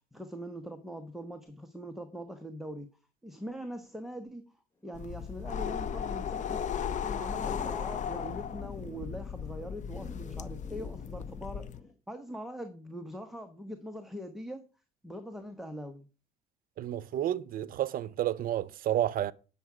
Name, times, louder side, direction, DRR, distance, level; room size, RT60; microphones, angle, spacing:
voice 1, 0.1-2.9 3.2-4.5 4.8-11.7 12.1-14.6 15.0-16.1, equal, ahead, 1.1 m, -42 dB
sound 1, 4.9-11.8, left 8 dB, 45° left, 0.7 m, -36 dB
Thunder / Rain, 4.9-11.9, left 1 dB, 15° left, 2.4 m, -51 dB
voice 2, 16.8-19.3, right 12 dB, 55° right, 0.7 m, -30 dB
9.0 x 7.2 x 4.9 m
cardioid pair, 110°, 17 cm